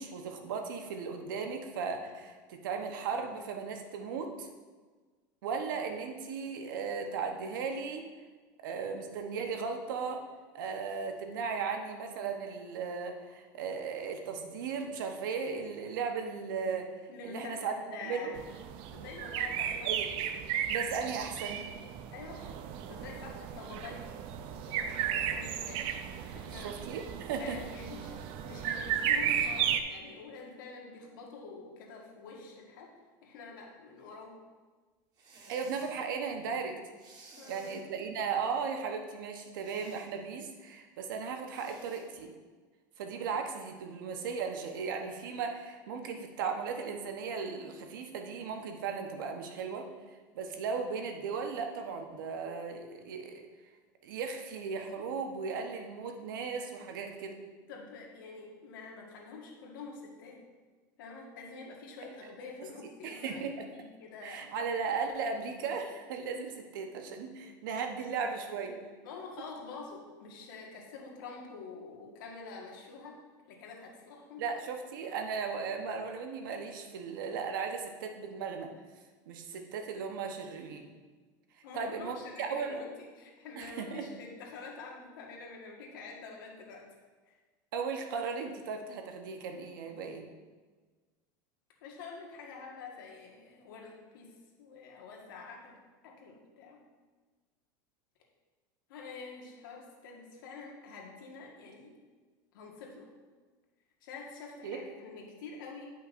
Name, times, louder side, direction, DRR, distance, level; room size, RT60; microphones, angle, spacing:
voice 1, 0.0-4.5 5.4-8.1 8.6-10.2 10.5-17.7 18.0-18.4 19.8-20.1 20.7-21.6 26.5-27.6 35.5-36.8 37.5-42.3 43.0-53.4 54.0-57.4 62.6-62.7 63.0-63.6 64.2-68.8 74.4-78.7 79.3-81.0 81.7-82.8 83.6-84.1 87.7-90.3 104.6-104.8, right 5 dB, 85° right, 5 dB, 0.9 m, -36 dB
voice 2, 17.1-18.3 18.9-19.9 22.1-22.5 22.9-24.0 24.6-25.9 26.3-26.8 27.4-32.9 33.2-34.4 37.4-37.8 57.7-60.4 61.0-64.5 69.0-73.2 73.4-74.4 81.6-86.8 87.3-87.4 91.8-95.8 96.0-96.8 98.9-101.9 102.5-103.1 104.0-105.9, left 4 dB, 85° left, -1 dB, 1.5 m, -47 dB
sound 1, 18.3-29.8, right 9 dB, 55° right, 0.5 m, -34 dB
sound 2, 35.1-35.9 37.0-37.8 39.6-40.1 41.5-42.0, right 3 dB, 40° right, 1.4 m, -55 dB
9.8 x 5.6 x 2.5 m, 1.4 s
supercardioid pair, 120°, 11 cm